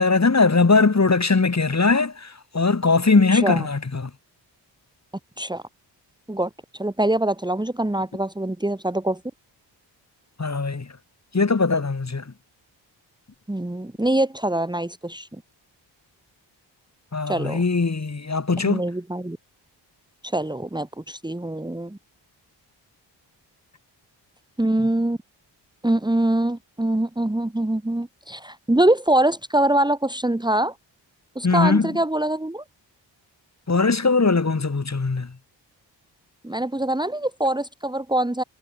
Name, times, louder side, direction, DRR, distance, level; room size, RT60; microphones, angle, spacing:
voice 1, 0.0-4.1 10.4-10.9 11.3-12.3 17.1-18.8 31.4-31.9 33.7-35.3, left 4 dB, 35° left, 7.6 m, -20 dB
voice 2, 3.3-3.7 5.4-5.6 6.3-9.2 13.5-15.3 17.3-17.6 18.7-19.4 20.2-22.0 24.6-25.2 25.8-30.7 31.4-32.6 36.4-38.4, right 1 dB, 10° right, 2.3 m, -24 dB
cardioid pair, 70°, 44 cm